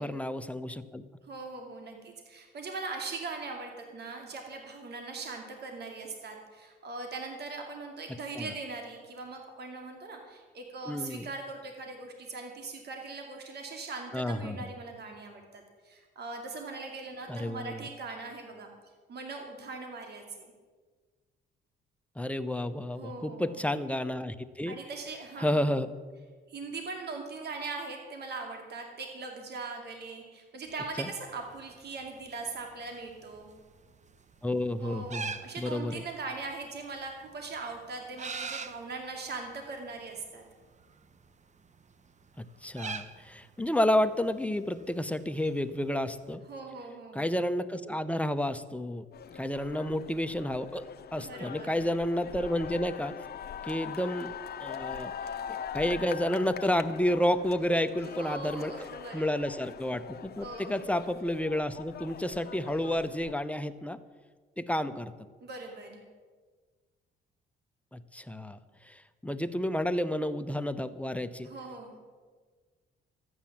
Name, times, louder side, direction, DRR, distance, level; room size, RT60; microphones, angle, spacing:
voice 1, 0.0-1.0 8.4-8.5 10.9-11.3 14.1-14.7 17.3-17.9 22.2-24.7 25.4-25.9 31.0-31.1 34.4-36.0 42.4-46.4 47.1-49.1 49.3-50.8 51.1-53.1 53.6-55.1 55.7-58.7 59.1-64.0 64.6-65.1 67.9-68.6 68.8-71.5, left 1 dB, 5° left, 10 dB, 0.7 m, -30 dB
voice 2, 1.2-18.7 19.1-20.5 23.0-23.5 24.7-25.7 26.5-33.5 34.8-40.4 46.5-47.3 51.2-51.8 58.2-59.5 60.4-60.8 65.4-66.0 71.4-71.9, right 3 dB, 55° right, 3 dB, 2.5 m, -40 dB
sound 1, 30.7-46.4, right 5 dB, 35° right, 1.0 m, -46 dB
sound 2, 49.1-63.3, left 8 dB, 55° left, 0.8 m, -42 dB
13.5 x 9.6 x 7.3 m, 1.5 s
cardioid pair, 90°, 20 cm